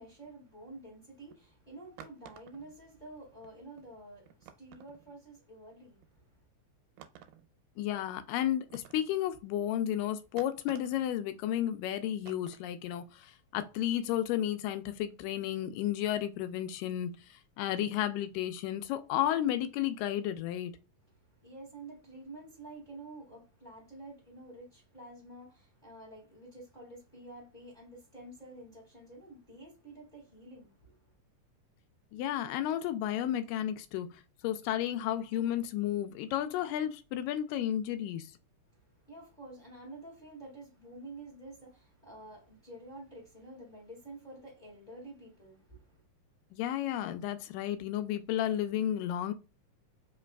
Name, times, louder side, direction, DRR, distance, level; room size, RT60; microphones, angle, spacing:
voice 1, 0.0-6.3 21.4-31.0 38.9-46.0, right 2 dB, 25° left, 1.1 m, -49 dB
sound 1, 1.3-1.4 2.0-2.8 3.2-3.3 3.4-3.5 3.8-3.9 4.3-5.2 6.0-6.1 7.0-7.5 8.0-8.1 8.7-9.1 9.9-10.0 10.4-11.1 11.7-11.8 12.3-12.7, right 11 dB, 90° right, 2.2 m, -52 dB
voice 2, 7.8-20.7 32.1-38.3 46.5-49.3, left 11 dB, 85° left, 2.2 m, -32 dB
4.9 x 3.1 x 2.2 m
omnidirectional pair, 3.8 m